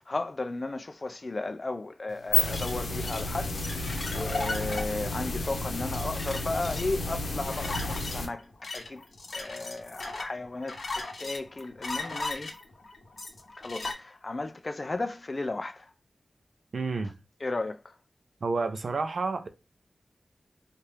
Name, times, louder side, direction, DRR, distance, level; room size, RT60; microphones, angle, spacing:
voice 1, 0.1-9.0 9.3-12.5 13.6-15.9 17.4-17.9, left 2 dB, 40° left, 0.3 m, -35 dB
sound 1, 2.1-8.3, left 2 dB, 90° left, 0.8 m, -31 dB
sound 2, 2.5-13.9, left 3 dB, 65° left, 1.0 m, -38 dB
voice 2, 16.7-17.1 18.4-19.5, right 4 dB, 65° right, 0.5 m, -30 dB
4.4 x 2.5 x 3.3 m
wide cardioid pair, 105°, 0 cm